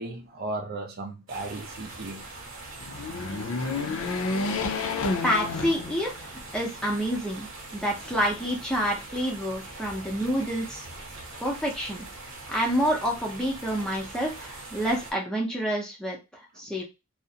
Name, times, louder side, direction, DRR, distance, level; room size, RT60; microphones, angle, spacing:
voice 1, 0.0-2.3 16.7-16.8, right 2 dB, 45° right, 0.4 m, -36 dB
sound 1, 1.3-15.1, right 2 dB, 65° right, 0.9 m, -42 dB
sound 2, 2.8-6.4 6.9-7.0 8.1-8.8, left 3 dB, 85° left, 0.5 m, -30 dB
voice 2, 5.2-10.8 11.4-12.0 12.5-16.2 16.6-16.8, equal, 5° left, 0.5 m, -28 dB
2.4 x 2.0 x 2.7 m
head